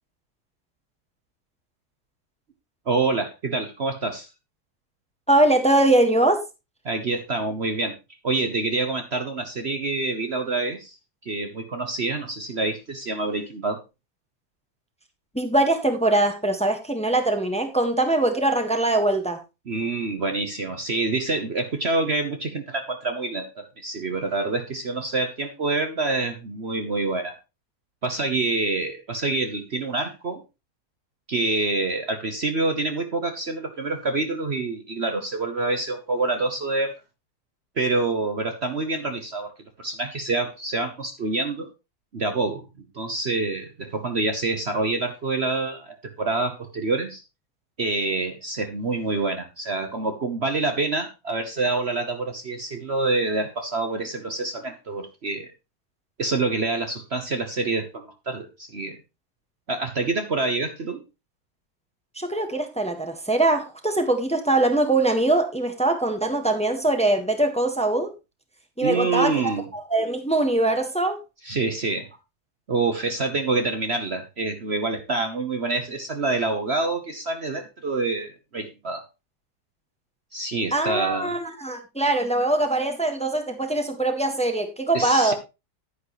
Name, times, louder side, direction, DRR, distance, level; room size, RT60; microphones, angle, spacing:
voice 1, 2.9-4.3 6.8-7.9 8.2-11.0 11.2-13.8 19.7-27.4 28.0-30.4 31.3-36.9 37.8-39.5 39.8-41.7 42.1-42.6 42.9-47.2 47.8-55.5 56.2-59.0 59.7-61.0 68.8-69.7 71.4-72.1 72.7-79.0 80.3-81.3 84.9-85.3, right 3 dB, 45° right, 6 dB, 1.3 m, -26 dB
voice 2, 5.3-6.4 15.3-19.4 62.1-68.1 68.8-69.4 69.7-71.2 80.7-85.3, right 2 dB, 5° left, 6 dB, 1.5 m, -22 dB
11.0 x 9.8 x 3.2 m, 0.26 s
omnidirectional pair, 1.7 m